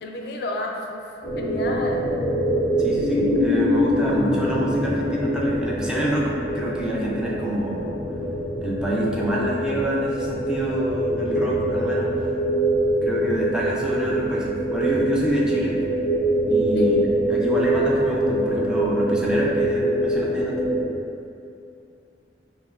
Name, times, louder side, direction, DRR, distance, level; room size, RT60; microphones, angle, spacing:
voice 1, 0.0-2.1 16.7-16.9, left 2 dB, 60° left, 1 dB, 0.3 m, -31 dB
sound 1, 1.2-20.9, equal, 35° left, 0.8 m, -24 dB
voice 2, 2.8-7.9 8.6-12.3 13.0-15.8 16.5-17.0 17.3-20.6, right 1 dB, 5° right, -5 dB, 0.4 m, -27 dB
5.4 x 2.2 x 2.3 m, 2.5 s
head